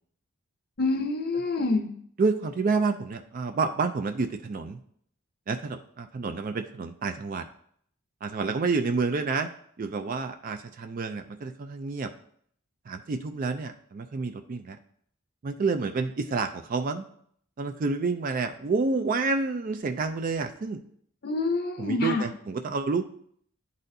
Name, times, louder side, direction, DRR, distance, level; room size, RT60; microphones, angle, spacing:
voice 1, 0.8-1.9 21.2-22.2, left 3 dB, 50° left, 3 dB, 0.6 m, -27 dB
voice 2, 2.2-4.8 5.5-7.4 8.2-9.5 9.8-12.1 12.9-14.8 15.4-17.0 17.6-20.8 21.8-23.2, right 4 dB, 40° right, 7 dB, 0.3 m, -29 dB
11.0 x 4.1 x 2.6 m, 0.64 s
head